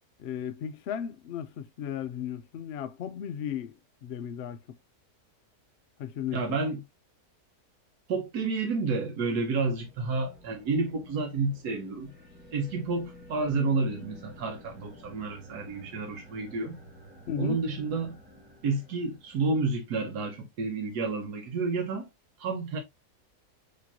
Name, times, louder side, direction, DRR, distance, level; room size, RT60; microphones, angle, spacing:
voice 1, 0.2-3.7 4.0-4.6 6.0-6.4 17.3-17.6, left 9 dB, 65° left, 0.6 m, -35 dB
voice 2, 6.3-6.8 8.1-12.1 12.5-16.8 17.4-18.2 18.6-22.1 22.4-22.8, right 3 dB, 85° right, 1.4 m, -30 dB
sound 1, 9.2-19.7, left 1 dB, 5° right, 1.4 m, -52 dB
5.2 x 3.1 x 2.7 m
omnidirectional pair, 1.6 m